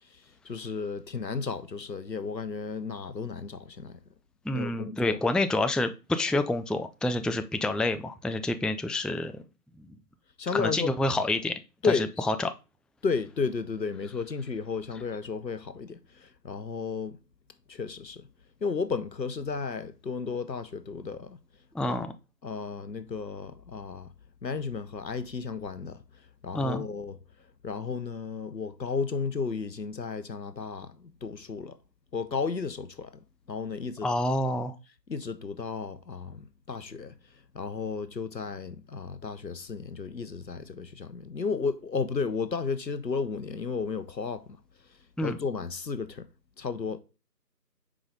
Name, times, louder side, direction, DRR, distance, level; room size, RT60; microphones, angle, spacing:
voice 1, 0.4-3.9 4.5-5.2 10.4-11.0 11.8-12.1 13.0-17.2 17.7-18.3 18.6-21.4 21.8-22.0 22.4-24.1 24.4-26.0 26.4-27.2 27.6-31.8 32.1-33.1 33.5-34.1 35.1-37.1 37.5-44.4 45.2-46.2 46.6-47.0, left 5 dB, 90° left, 0.8 m, -33 dB
voice 2, 4.5-9.3 10.5-11.5 11.8-12.5 21.7-22.1 26.5-26.8 34.0-34.7 45.2-45.4, left 2 dB, ahead, 0.3 m, -28 dB
4.9 x 4.8 x 3.9 m
figure-of-eight pair, 170°, 49 cm